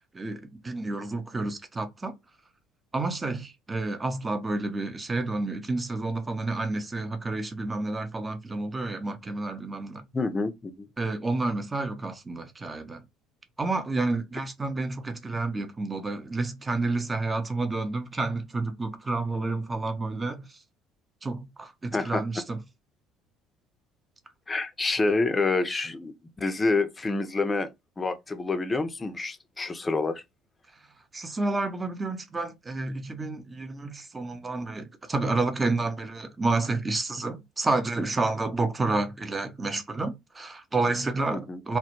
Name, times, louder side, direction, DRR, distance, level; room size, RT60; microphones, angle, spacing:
voice 1, 0.1-2.1 2.9-10.0 11.0-13.0 13.6-20.4 21.2-22.6 31.1-41.8, right 3 dB, 25° right, 0.6 m, -30 dB
voice 2, 10.1-10.9 21.9-22.3 24.5-26.1 26.4-27.7 28.0-30.2 41.3-41.6, left 3 dB, 25° left, 0.5 m, -27 dB
2.1 x 2.1 x 2.9 m
hypercardioid pair, 60°, 0 cm